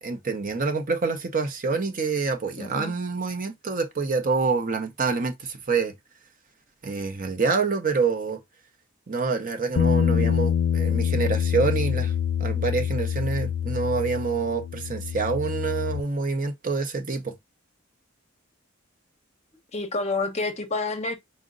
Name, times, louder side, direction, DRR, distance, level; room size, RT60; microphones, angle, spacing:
voice 1, 0.0-5.9 6.8-8.4 9.1-12.1 12.4-17.3, right 4 dB, 40° right, 0.7 m, -26 dB
voice 2, 2.6-2.9 19.7-21.2, left 3 dB, 35° left, 0.7 m, -28 dB
Bass guitar, 9.8-16.0, left 8 dB, 70° left, 0.4 m, -25 dB
4.9 x 2.1 x 3.7 m
head